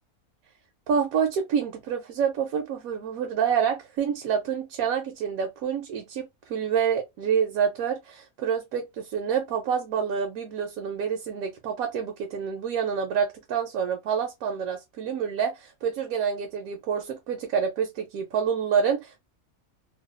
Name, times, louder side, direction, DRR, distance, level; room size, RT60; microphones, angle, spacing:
voice 1, 0.9-19.2, right 7 dB, 85° right, 1.1 m, -27 dB
2.7 x 2.2 x 2.4 m
omnidirectional pair, 1.5 m